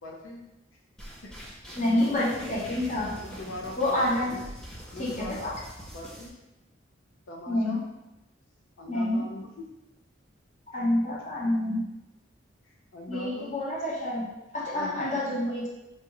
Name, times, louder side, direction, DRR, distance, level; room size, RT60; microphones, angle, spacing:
voice 1, 0.0-0.4 1.2-1.3 1.6-2.3 3.2-4.4 4.9-5.5 5.9-6.3 7.3-7.8 8.8-9.7 10.7-10.9 12.6-13.5 14.7-15.2 15.5-15.6, left 1 dB, 85° left, -2 dB, 0.5 m, -42 dB
sound 1, 1.0-6.3, equal, 5° left, 0.4 m, -44 dB
voice 2, 1.7-3.1 3.8-4.4 5.0-5.6 7.5-7.8 8.9-9.3 10.7-11.9 13.1-14.3 14.5-15.7, left 1 dB, 35° left, -6 dB, 0.9 m, -28 dB
4.2 x 2.4 x 2.9 m, 0.98 s
head